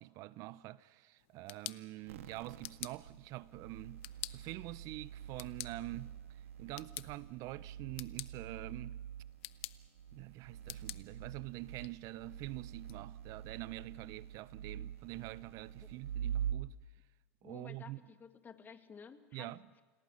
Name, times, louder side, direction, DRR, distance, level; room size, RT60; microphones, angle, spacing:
voice 1, 0.0-4.0 4.3-6.2 6.6-9.0 10.1-16.8 17.4-18.0 19.3-19.6, right 18 dB, 55° right, 0.6 m, -46 dB
sound 1, 1.2-13.0, left 19 dB, 70° left, 0.7 m, -51 dB
sound 2, 2.1-16.5, right 9 dB, 90° right, 1.5 m, -46 dB
voice 2, 17.4-19.8, left 6 dB, 25° left, 1.8 m, -54 dB
27.5 x 17.5 x 6.4 m
hypercardioid pair, 100°, 7 cm